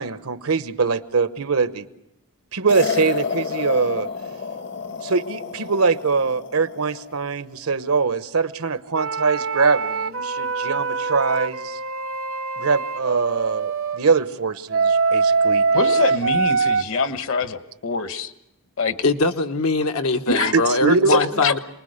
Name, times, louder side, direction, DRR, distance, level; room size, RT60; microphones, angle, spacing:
voice 1, 0.0-1.9 2.5-4.1 5.0-11.8 12.6-15.6 20.5-21.2, right 4 dB, 85° right, 12 dB, 1.0 m, -22 dB
sound 1, 2.7-7.1, left 6 dB, 50° left, 0.8 m, -30 dB
sound 2, 9.0-14.0 14.7-16.8, right 4 dB, 65° right, 0.8 m, -23 dB
voice 2, 15.7-18.3 18.8-19.0 20.3-20.5 21.1-21.6, left 4 dB, 70° left, 10 dB, 1.3 m, -24 dB
voice 3, 19.0-21.6, left 3 dB, 90° left, 6 dB, 1.2 m, -21 dB
27.5 x 20.5 x 6.6 m, 0.85 s
head